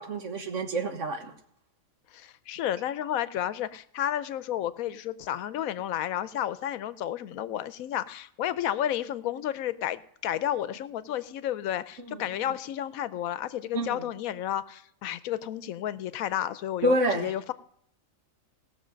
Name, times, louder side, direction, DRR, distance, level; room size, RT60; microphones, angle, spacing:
voice 1, 0.0-1.3 12.1-12.2 13.7-14.0 16.8-17.3, right 1 dB, 65° right, 1.6 m, -28 dB
voice 2, 2.1-17.5, left 11 dB, 85° left, 1.1 m, -32 dB
17.5 x 6.7 x 5.1 m
omnidirectional pair, 1.4 m